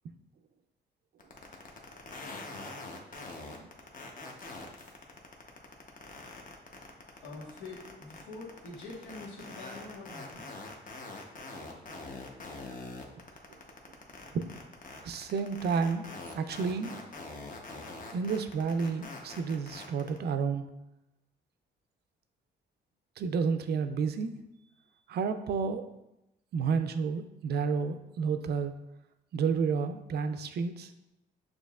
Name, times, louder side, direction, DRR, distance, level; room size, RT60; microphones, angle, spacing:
sound 1, 1.2-20.2, left 3 dB, 40° left, 0.8 m, -44 dB
voice 1, 7.2-10.5, left 2 dB, 90° left, -2 dB, 1.2 m, -45 dB
voice 2, 15.0-16.1 16.3-17.0 18.1-20.7 23.2-24.3 25.1-25.9 26.5-28.7 29.3-30.9, right 5 dB, 55° right, 9 dB, 0.4 m, -30 dB
6.5 x 2.8 x 2.3 m, 0.90 s
cardioid pair, 90°, 20 cm